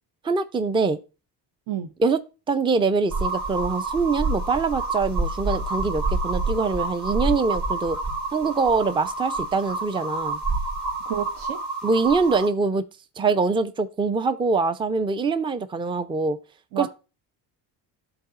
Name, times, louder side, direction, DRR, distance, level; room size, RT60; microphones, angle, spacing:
voice 1, 0.2-1.0 2.0-2.2 2.5-8.0 8.3-10.4 11.8-12.8 13.2-16.4 16.8-16.9, right 4 dB, 10° right, 0.4 m, -24 dB
sound 1, 3.1-12.5, right 2 dB, 40° right, 2.1 m, -28 dB
voice 2, 11.1-11.6 16.7-16.9, right 9 dB, 60° right, 0.8 m, -29 dB
11.5 x 4.0 x 2.5 m
cardioid pair, 90°, 44 cm